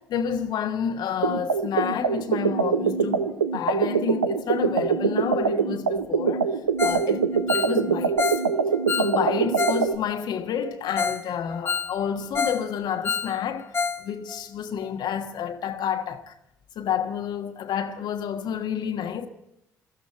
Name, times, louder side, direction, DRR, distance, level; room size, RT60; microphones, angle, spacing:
voice 1, 0.0-6.5 6.8-8.3 9.0-13.7 14.0-16.3 16.7-19.3, left 8 dB, 60° left, 1.4 m, -29 dB
sound 1, 1.2-9.9, right 5 dB, 85° right, 0.7 m, -24 dB
Ringtone, 6.8-7.1 7.3-9.9 10.1-10.2 10.7-10.8 11.0-11.2 11.5-12.7 12.9-14.0 14.3-14.4 14.8-14.9, left 5 dB, 30° left, 0.8 m, -28 dB
22.5 x 14.5 x 4.4 m
figure-of-eight pair, 45°, 8 cm